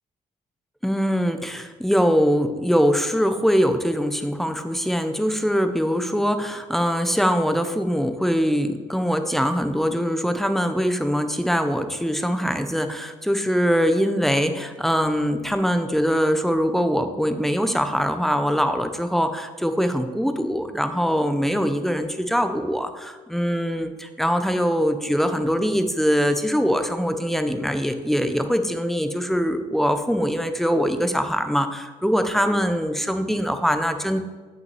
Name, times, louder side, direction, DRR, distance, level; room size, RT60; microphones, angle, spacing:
voice 1, 0.8-34.2, equal, ahead, 8 dB, 0.5 m, -22 dB
8.0 x 5.9 x 3.1 m, 1.4 s
cardioid pair, 110°, 17 cm